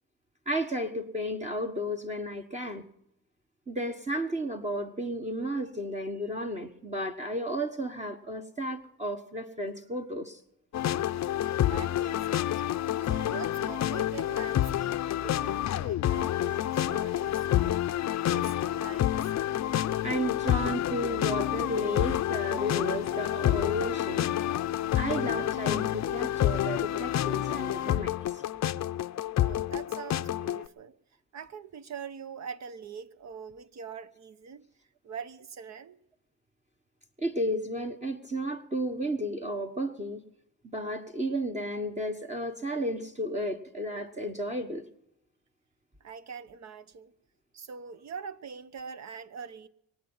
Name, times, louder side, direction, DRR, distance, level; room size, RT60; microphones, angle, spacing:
voice 1, 0.5-2.8 3.7-10.4 20.0-24.3 24.9-28.4 37.2-40.2 40.7-44.8, equal, 20° right, 1.3 m, -33 dB
sound 1, 10.7-30.6, left 12 dB, 50° left, 0.6 m, -28 dB
voice 2, 11.6-12.6 13.0-17.9 18.2-19.3 29.4-31.0 31.3-34.7 35.0-36.0 46.0-47.1 47.5-49.7, right 6 dB, 45° right, 1.1 m, -43 dB
24.0 x 8.8 x 5.6 m
cardioid pair, 95°, 37 cm